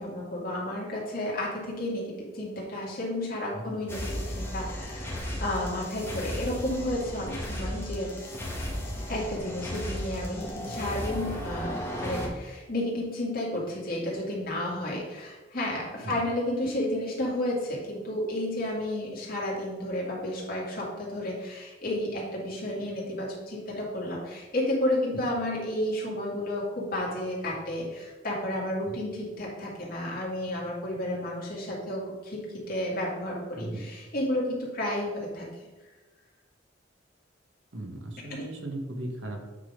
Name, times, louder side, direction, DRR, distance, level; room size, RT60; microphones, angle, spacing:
voice 1, 0.0-8.1 9.1-35.5 38.3-38.5, left 1 dB, 50° left, -4 dB, 2.3 m, -32 dB
sound 1, 3.9-12.3, equal, 15° left, 1.2 m, -35 dB
voice 2, 37.7-39.4, right 1 dB, 75° right, 4 dB, 1.2 m, -37 dB
8.3 x 3.9 x 5.1 m, 1.2 s
head